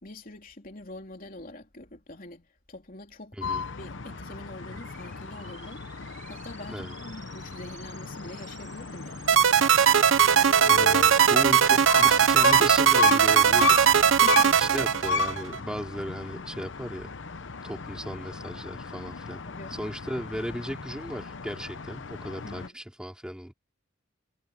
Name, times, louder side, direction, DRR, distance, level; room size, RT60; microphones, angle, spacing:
voice 1, 0.0-5.8 6.3-9.4 14.1-14.6 19.5-19.8 22.4-22.8, left 1 dB, 45° left, 3.5 m, -44 dB
sound 1, 3.4-22.7, left 4 dB, 65° left, 0.8 m, -34 dB
sound 2, 3.8-15.5, right 8 dB, 40° right, 5.1 m, -53 dB
sound 3, 9.3-15.6, right 8 dB, 80° right, 0.8 m, -19 dB
voice 2, 10.6-13.9 14.6-17.1 17.6-19.4 19.7-23.5, equal, 5° right, 3.2 m, -36 dB
head